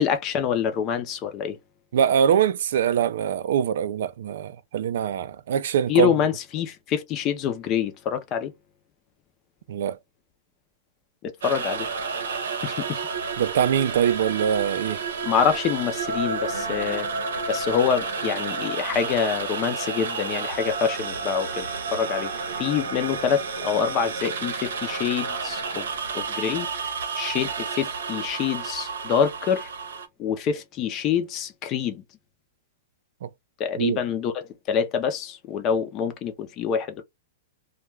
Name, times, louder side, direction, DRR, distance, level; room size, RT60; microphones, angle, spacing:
voice 1, 0.0-1.6 5.9-8.5 11.2-11.9 12.6-13.0 15.2-17.1 17.5-21.7 21.9-22.3 22.6-25.9 26.1-26.7 27.2-29.7 30.2-32.0 33.6-37.0, left 7 dB, 25° left, 0.4 m, -26 dB
voice 2, 1.9-6.1 9.7-10.0 13.4-15.0 33.2-33.3 33.8-34.0, right 9 dB, 60° right, 0.3 m, -23 dB
sound 1, 11.4-30.1, right 5 dB, 90° right, 0.7 m, -31 dB
2.2 x 2.2 x 3.2 m
supercardioid pair, 165°, 0 cm